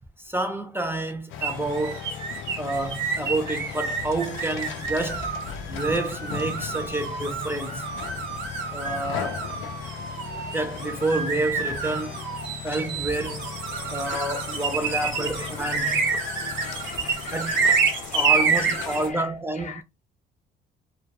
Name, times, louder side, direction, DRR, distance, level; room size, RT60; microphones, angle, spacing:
voice 1, 0.2-2.1 2.6-5.3 5.7-7.8 8.7-9.4 10.5-12.2 12.6-13.6 13.9-16.1 17.3-17.6 18.1-19.8, right 2 dB, 10° right, 0.5 m, -29 dB
sound 1, 1.3-19.1, left 9 dB, 90° left, 0.4 m, -37 dB
sound 2, 1.4-19.1, right 5 dB, 70° right, 1.0 m, -29 dB
voice 2, 14.8-19.3 19.5-19.8, left 5 dB, 40° left, 0.6 m, -42 dB
2.3 x 2.2 x 2.8 m
cardioid pair, 90°, 20 cm